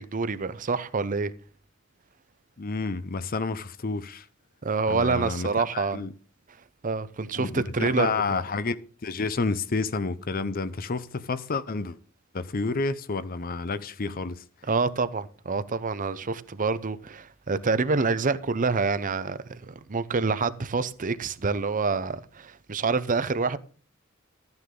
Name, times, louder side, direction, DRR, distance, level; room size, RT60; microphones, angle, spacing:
voice 1, 0.0-1.3 4.6-6.1 6.8-8.1 14.7-23.6, right 4 dB, 40° right, 0.7 m, -27 dB
voice 2, 2.6-4.2 4.9-6.1 7.4-12.0 12.3-14.4, left 3 dB, 45° left, 0.7 m, -30 dB
13.5 x 9.6 x 3.8 m
head